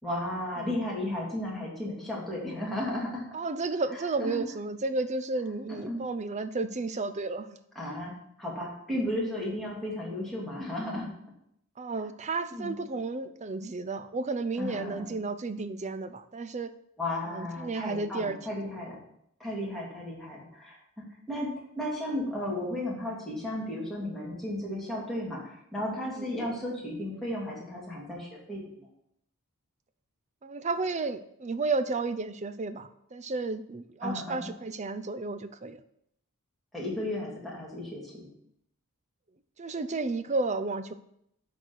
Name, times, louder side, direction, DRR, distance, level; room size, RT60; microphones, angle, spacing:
voice 1, 0.0-3.2 3.9-4.4 5.7-6.0 7.7-11.1 12.5-12.7 14.6-15.1 17.0-19.0 19.4-21.5 21.8-28.9 34.0-34.5 36.7-38.3, left 1 dB, ahead, -6 dB, 2.9 m, -34 dB
voice 2, 3.3-7.5 11.8-16.7 17.3-18.4 26.0-26.3 30.4-35.8 39.6-40.9, right 3 dB, 30° right, 11 dB, 0.5 m, -32 dB
11.0 x 4.2 x 6.3 m, 0.74 s
head